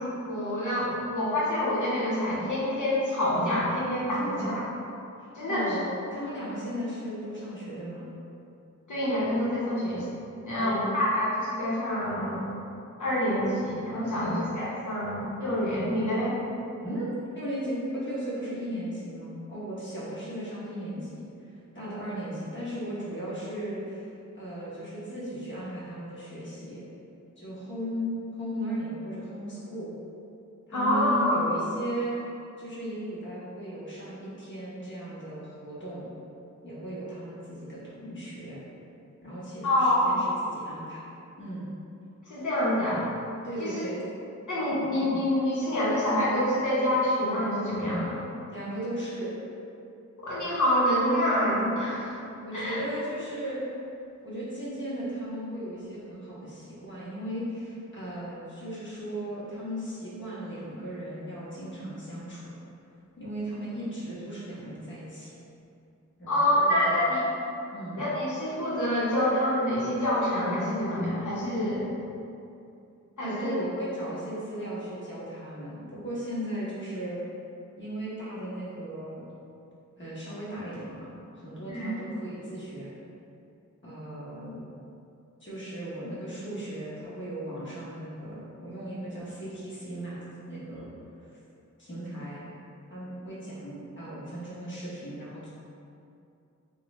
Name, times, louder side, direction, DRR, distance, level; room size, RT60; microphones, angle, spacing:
voice 1, 0.0-4.6 5.3-5.8 8.9-10.0 10.4-12.5 13.0-16.4 30.7-31.4 39.6-40.2 42.3-43.0 43.6-43.8 44.5-48.2 50.2-52.2 52.5-52.8 66.3-67.2 68.0-71.9 73.2-73.5 81.7-81.9, left 1 dB, 75° left, -7 dB, 1.0 m, -26 dB
voice 2, 4.2-4.6 5.2-8.1 10.5-11.0 14.2-14.4 16.8-21.3 21.7-26.8 27.4-29.9 30.7-32.2 32.6-36.1 36.6-38.6 39.2-41.1 41.4-41.7 43.4-44.0 48.5-49.3 52.4-53.7 54.2-62.5 63.2-65.3 66.2-67.0 67.7-68.0 73.2-77.2 77.8-79.3 80.0-81.1 81.4-82.9 83.8-84.7 85.4-90.9 91.8-92.4 92.9-95.5, right 1 dB, 40° left, -9 dB, 1.1 m, -36 dB
3.6 x 2.3 x 3.1 m, 2.6 s
wide cardioid pair, 85°, 31 cm